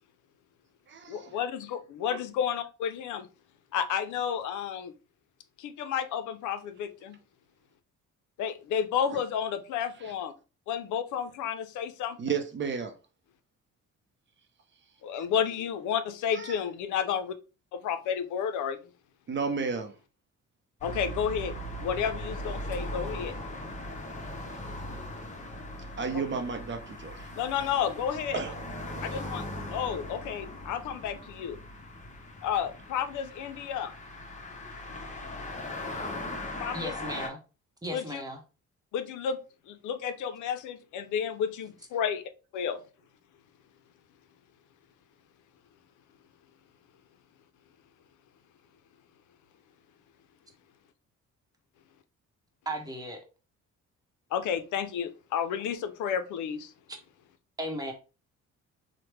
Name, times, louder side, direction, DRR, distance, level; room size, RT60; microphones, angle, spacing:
voice 1, 1.1-3.3 3.7-4.9 5.6-7.2 8.4-10.3 10.7-12.4 15.0-17.3 17.7-18.8 20.8-23.4 26.1-26.2 27.3-28.4 29.0-29.4 29.7-31.6 32.4-33.9 36.6-36.9 37.9-38.2 38.9-39.4 39.7-42.2 42.5-42.8 54.3-56.7, left 8 dB, 80° left, 0.5 m, -31 dB
voice 2, 12.2-12.9 19.3-19.9 26.0-27.2 28.3-28.5, right 5 dB, 40° right, 0.6 m, -31 dB
sound 1, 20.8-37.3, left 1 dB, 25° left, 0.8 m, -39 dB
voice 3, 36.7-37.4 37.8-38.4 52.7-53.2 57.6-57.9, right 1 dB, 10° right, 0.9 m, -35 dB
3.1 x 2.1 x 3.1 m
cardioid pair, 90°, 30 cm